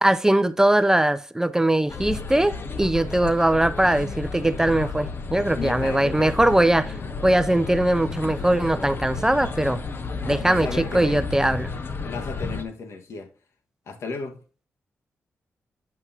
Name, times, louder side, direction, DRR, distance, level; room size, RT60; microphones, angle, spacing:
voice 1, 0.0-9.8 10.3-11.7, right 1 dB, 10° right, 0.5 m, -21 dB
sound 1, 1.9-12.6, left 4 dB, 50° left, 1.0 m, -32 dB
voice 2, 5.5-6.5 10.4-11.2 12.1-13.3 13.9-14.4, left 4 dB, 75° left, 1.5 m, -34 dB
9.3 x 7.8 x 2.8 m
cardioid pair, 75°, 5 cm